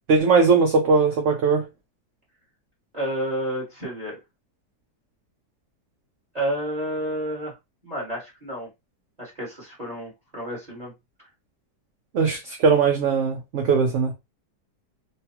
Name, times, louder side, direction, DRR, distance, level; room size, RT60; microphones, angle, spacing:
voice 1, 0.1-1.7 12.1-14.1, right 5 dB, 65° right, 0.8 m, -19 dB
voice 2, 2.9-4.2 6.3-7.5 7.8-8.7 9.2-10.9 11.2-11.3, right 1 dB, 25° right, 1.4 m, -30 dB
3.3 x 2.3 x 2.9 m
omnidirectional pair, 1.7 m